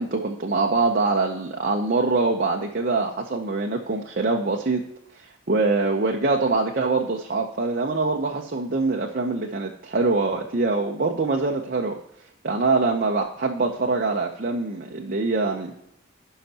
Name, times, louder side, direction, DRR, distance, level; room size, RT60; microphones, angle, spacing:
voice 1, 0.0-4.8 5.2-12.0 12.4-15.7, right 3 dB, 45° right, 1 dB, 0.7 m, -24 dB
16.0 x 5.8 x 2.9 m, 0.78 s
head